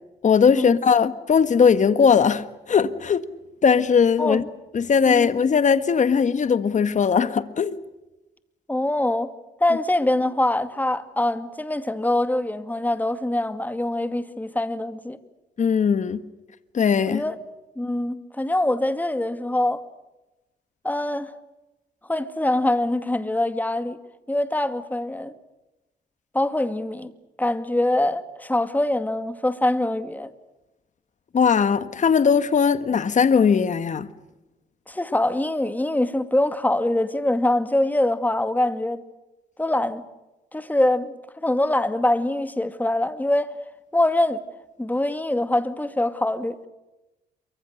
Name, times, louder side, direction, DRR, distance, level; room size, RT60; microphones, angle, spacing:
voice 1, 0.2-3.2 3.6-4.4 4.7-7.8 15.6-16.2 16.7-17.2 31.3-34.1, left 6 dB, 45° left, 1.6 m, -19 dB
voice 2, 8.7-9.3 9.6-15.2 17.1-17.4 17.8-19.8 20.8-21.3 22.1-24.0 24.3-25.3 26.3-27.1 27.4-30.3 34.9-39.0 39.6-40.0 40.5-43.5 43.9-44.4 44.8-46.6, left 1 dB, 10° left, 2.4 m, -24 dB
28.0 x 24.0 x 6.6 m
cardioid pair, 80°, 17 cm